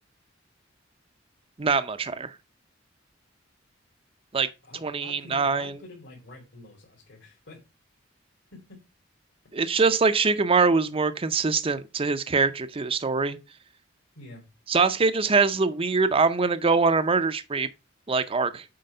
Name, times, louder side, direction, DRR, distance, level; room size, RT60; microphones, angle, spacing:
voice 1, 1.6-2.3 4.3-4.5 4.8-5.7 9.5-13.4 14.7-17.7 18.1-18.6, right 4 dB, 30° right, 0.5 m, -23 dB
voice 2, 4.6-7.6 8.5-8.8 9.8-9.9 14.1-14.5, left 2 dB, 65° left, 2.6 m, -47 dB
7.6 x 4.7 x 5.4 m
head